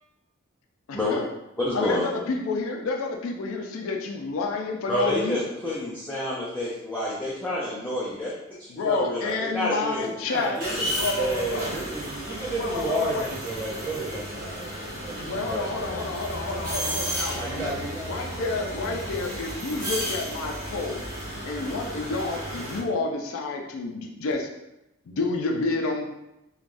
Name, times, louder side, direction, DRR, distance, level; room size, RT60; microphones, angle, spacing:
voice 1, 0.9-1.3 1.7-5.4 8.7-10.6 10.9-11.7 12.6-13.3 15.3-17.5 18.0-21.0 21.5-24.5 25.1-26.1, left 3 dB, 75° left, 2 dB, 0.4 m, -29 dB
voice 2, 1.6-2.0 4.9-10.1 10.4-10.6, left 1 dB, 10° left, -8 dB, 0.4 m, -29 dB
voice 3, 10.2-10.9 11.2-16.0 17.3-18.2, right 2 dB, 15° right, -10 dB, 1.2 m, -32 dB
sound 1, 10.6-22.8, equal, 45° right, 1.0 m, -33 dB
3.2 x 2.3 x 2.5 m, 0.90 s
head